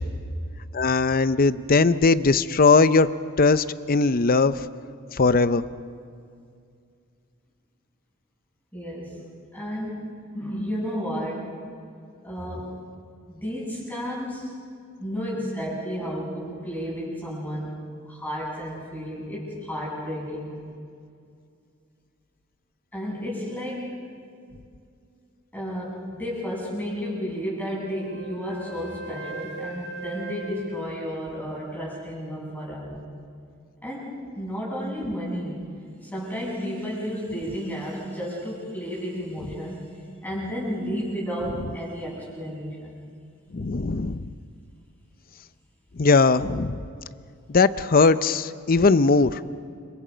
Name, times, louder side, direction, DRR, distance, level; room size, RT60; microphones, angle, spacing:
voice 1, 0.7-3.1 3.4-4.6 5.2-5.6 43.5-44.3 46.0-46.8 47.5-49.4, left 4 dB, 45° left, 14 dB, 0.6 m, -19 dB
voice 2, 8.7-11.6 12.2-12.7 13.3-14.5 15.0-20.5 22.9-23.9 25.5-33.0 33.8-35.6 36.0-43.0, equal, 10° left, -5 dB, 7.5 m, -32 dB
Wind instrument woodwind instrument, 27.7-31.9, right 3 dB, 55° right, 2.1 m, -40 dB
30.0 x 26.0 x 5.2 m, 2.4 s
head